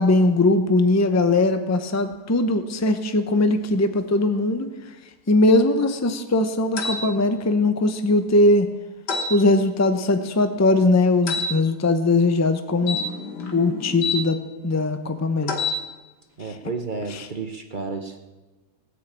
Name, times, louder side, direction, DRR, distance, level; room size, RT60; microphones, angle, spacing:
voice 1, 0.0-4.7 5.3-8.7 9.3-13.0 13.5-14.4 14.6-15.5 17.1-17.3, left 2 dB, 20° left, 8 dB, 0.5 m, -20 dB
sound 1, 6.8-7.0 9.1-9.3 11.3-11.5 12.8-14.2 15.4-15.8, left 4 dB, 75° left, 2.0 m, -27 dB
voice 2, 16.4-18.2, right 4 dB, 35° right, 5 dB, 0.8 m, -31 dB
18.5 x 6.5 x 8.6 m, 1.2 s
omnidirectional pair, 1.8 m